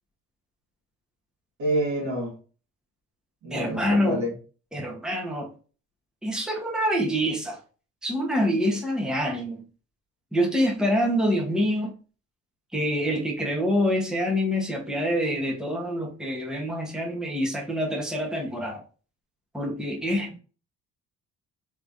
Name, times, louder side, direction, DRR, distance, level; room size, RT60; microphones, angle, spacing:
voice 1, 1.6-2.3 3.4-4.3, right 1 dB, 70° right, 1.9 m, -27 dB
voice 2, 3.5-4.2 4.7-5.5 6.2-7.6 8.0-9.6 10.3-11.9 12.7-18.8 19.5-20.3, equal, ahead, 1.1 m, -26 dB
3.6 x 3.2 x 2.6 m
cardioid pair, 90°, 30 cm